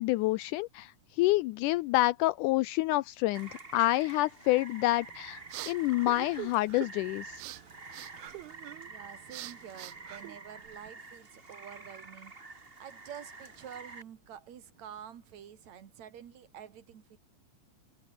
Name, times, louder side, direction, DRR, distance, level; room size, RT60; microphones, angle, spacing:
voice 1, 0.0-7.4, left 18 dB, 80° left, 2.0 m, -28 dB
Rain, 3.3-14.0, right 3 dB, 20° right, 2.1 m, -48 dB
sound 1, 5.0-10.9, right 18 dB, 80° right, 1.9 m, -45 dB
voice 2, 8.9-17.2, right 9 dB, 60° right, 3.1 m, -48 dB
omnidirectional pair, 3.7 m